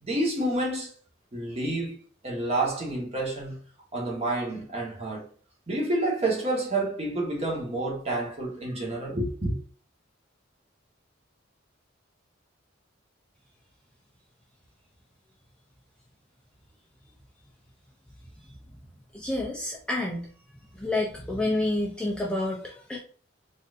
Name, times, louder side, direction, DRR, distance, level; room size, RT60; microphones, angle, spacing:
voice 1, 0.0-0.9 1.3-1.9 2.2-3.6 3.9-5.3 5.7-9.5, right 2 dB, 30° right, 1.1 m, -29 dB
voice 2, 19.1-20.3 20.8-23.0, left 2 dB, 5° left, 0.4 m, -29 dB
4.0 x 2.5 x 2.5 m
head